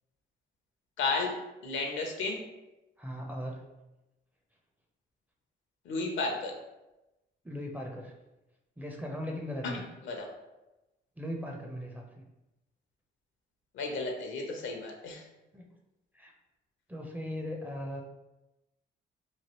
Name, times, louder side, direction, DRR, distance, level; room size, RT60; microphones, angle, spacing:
voice 1, 1.0-1.3 1.6-2.4 5.9-6.5 10.0-10.3 13.7-15.2, left 3 dB, 75° left, 2 dB, 0.7 m, -33 dB
voice 2, 3.0-3.7 7.4-8.1 8.8-9.8 11.2-12.3 15.5-15.7 16.1-16.3 16.9-18.0, equal, 10° right, 0 dB, 0.5 m, -38 dB
3.1 x 2.4 x 2.9 m, 0.99 s
cardioid pair, 90°, 20 cm